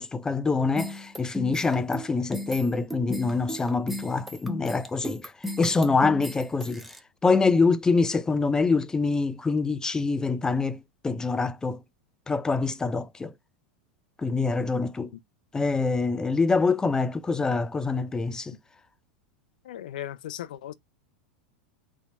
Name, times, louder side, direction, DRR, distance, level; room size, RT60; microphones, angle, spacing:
voice 1, 0.0-5.2 5.6-6.8 7.2-11.8 12.3-13.3 14.2-15.1 15.5-18.5, left 4 dB, 15° left, 0.4 m, -25 dB
sound 1, 0.8-7.0, left 1 dB, ahead, 0.8 m, -35 dB
voice 2, 19.6-20.7, left 12 dB, 70° left, 0.5 m, -37 dB
4.2 x 2.8 x 4.0 m
hypercardioid pair, 90°, 5 cm